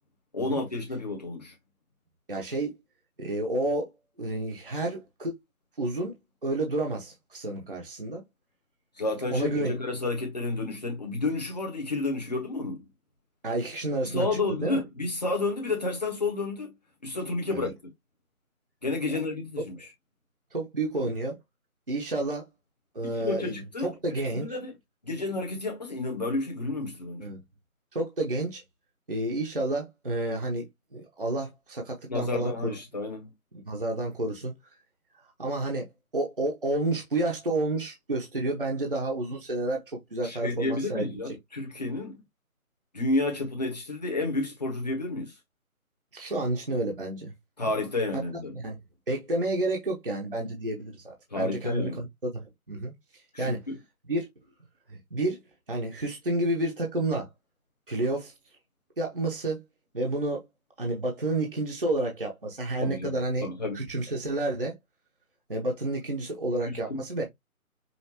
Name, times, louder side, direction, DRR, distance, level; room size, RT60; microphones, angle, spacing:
voice 1, 0.3-1.5 9.0-12.8 14.0-16.7 17.0-17.7 18.8-19.8 23.0-23.9 24.3-24.7 25.0-27.3 32.1-33.3 40.2-42.2 42.9-45.3 47.6-48.5 51.3-52.0 53.3-53.8 62.8-63.8 66.6-67.2, left 2 dB, 30° left, 1.1 m, -31 dB
voice 2, 2.3-2.7 3.2-3.9 4.2-5.3 5.8-6.1 6.4-8.2 9.3-9.7 13.4-14.8 17.5-17.7 19.1-19.2 20.5-21.4 21.9-22.5 22.9-24.6 27.2-27.4 27.9-28.6 29.1-30.6 30.9-32.8 33.7-34.5 35.4-41.2 46.1-47.3 47.6-47.7 48.5-48.8 49.1-52.4 52.7-52.9 53.4-53.6 54.1-54.3 54.9-55.4 55.7-57.3 57.9-58.3 59.0-59.6 59.9-60.4 60.8-63.5 63.7-64.7 65.5-67.2, right 2 dB, 40° right, 0.9 m, -30 dB
5.7 x 2.5 x 2.9 m
figure-of-eight pair, 175°, 43 cm